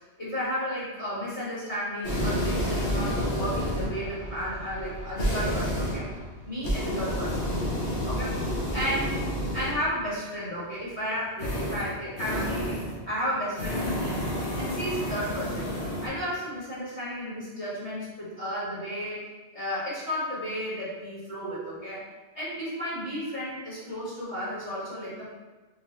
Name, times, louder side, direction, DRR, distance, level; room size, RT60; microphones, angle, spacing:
voice 1, 0.0-6.1 6.4-7.5 8.1-8.3 8.7-9.2 9.5-12.8 13.1-19.2 19.5-22.0 22.4-25.3, equal, 40° left, -9 dB, 1.8 m, -33 dB
sound 1, 2.0-10.0 11.4-13.0 13.5-16.1, equal, 70° left, 1.3 m, -30 dB
3.9 x 3.5 x 3.0 m, 1.2 s
omnidirectional pair, 1.2 m